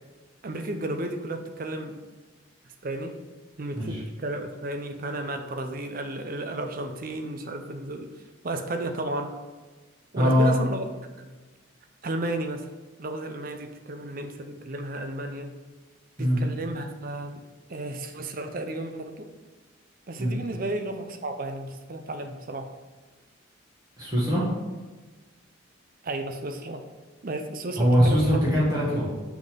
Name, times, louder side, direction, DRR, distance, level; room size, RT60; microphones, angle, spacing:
voice 1, 0.4-2.0 2.8-3.2 3.6-8.1 8.4-9.3 10.1-10.8 11.2-11.3 12.0-12.7 13.0-15.5 16.2-17.4 17.7-19.3 20.1-22.7 26.0-26.8 27.2-28.5, right 2 dB, 45° right, 6 dB, 0.5 m, -33 dB
voice 2, 10.1-10.6 16.2-16.4 20.2-20.4 24.0-24.5 27.8-29.1, equal, 20° right, -7 dB, 1.6 m, -22 dB
5.9 x 3.8 x 5.2 m, 1.3 s
head